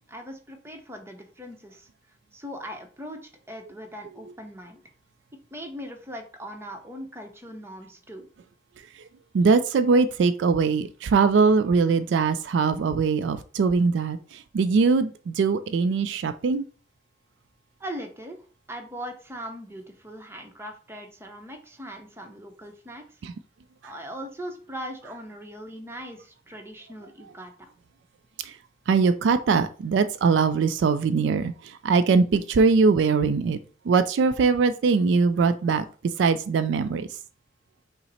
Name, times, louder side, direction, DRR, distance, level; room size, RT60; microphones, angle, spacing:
voice 1, 0.1-1.9 2.3-4.8 5.5-8.3 17.8-23.1 23.8-27.7, equal, 15° right, 3 dB, 0.7 m, -40 dB
voice 2, 9.3-16.6 23.2-23.3 28.4-28.5 28.9-33.6 33.9-35.8 36.2-37.1, right 4 dB, 70° right, 11 dB, 0.3 m, -21 dB
5.6 x 2.0 x 4.1 m, 0.39 s
head